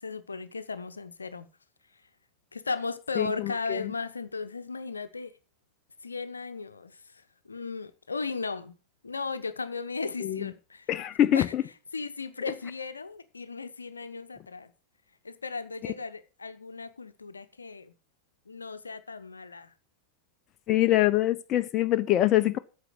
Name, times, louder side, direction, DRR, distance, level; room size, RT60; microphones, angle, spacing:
voice 1, 0.0-1.5 2.5-5.3 6.0-8.8 9.0-10.9 11.3-11.5 11.9-14.7 15.2-17.9 18.5-19.7, left 4 dB, 75° left, 0.8 m, -36 dB
voice 2, 3.2-3.9 10.2-10.5 10.9-11.6 20.7-22.6, left 14 dB, 35° left, 0.7 m, -24 dB
9.1 x 7.2 x 7.5 m
figure-of-eight pair, 90°, 0 cm